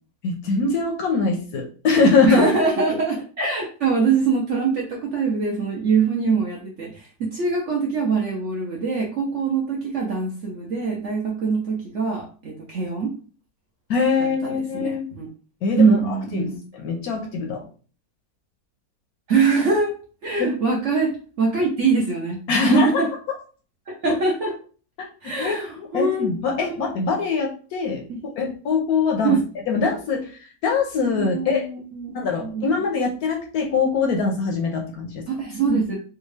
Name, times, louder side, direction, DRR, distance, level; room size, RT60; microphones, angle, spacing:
voice 1, 0.2-2.5 13.9-15.0 15.6-17.6 20.4-20.5 22.5-23.1 25.4-28.0 28.4-29.4 29.7-31.7 32.1-35.2, left 4 dB, 70° left, 2 dB, 1.0 m, -23 dB
voice 2, 2.2-13.1 14.4-15.3 15.8-16.6 19.3-19.9 20.2-21.1 21.4-23.1 23.9-24.5 25.2-26.3 26.6-26.9 28.1-28.5 29.2-29.4 31.2-32.7 35.3-35.9, right 4 dB, 60° right, -2 dB, 0.8 m, -23 dB
3.5 x 2.3 x 3.2 m, 0.39 s
omnidirectional pair, 1.9 m